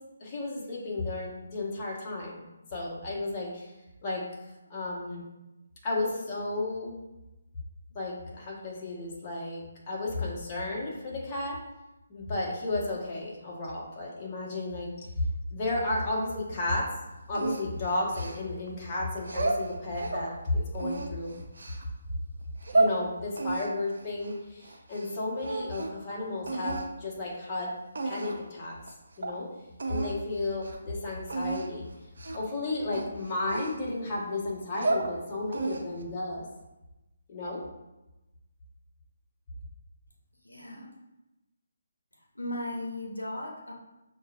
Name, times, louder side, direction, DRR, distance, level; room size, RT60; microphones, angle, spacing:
voice 1, 0.2-2.4 2.7-3.7 4.0-4.2 4.7-5.2 5.8-7.0 7.9-11.6 12.1-15.1 15.5-16.8 17.3-21.3 22.7-27.7 28.0-28.8 29.2-29.5 29.9-31.8 32.3-36.4 37.3-37.6, left 2 dB, 30° left, -4 dB, 1.1 m, -33 dB
sound 1, 17.3-18.7 19.2-20.3 20.7-21.8 22.4-23.0 23.4-25.1 25.4-26.0 26.5-26.9 27.5-27.6 27.9-28.5 28.9-29.0 29.2-29.4 29.8-30.2 30.5-30.8 31.3-31.7 32.2-32.5 32.9-34.1 34.6-35.1 35.5-36.0, right 2 dB, 65° right, 0.6 m, -31 dB
voice 2, 40.4-40.9 42.3-43.7, left 1 dB, 85° left, 0 dB, 0.7 m, -36 dB
6.1 x 2.3 x 2.5 m, 0.98 s
figure-of-eight pair, 145°, 0 cm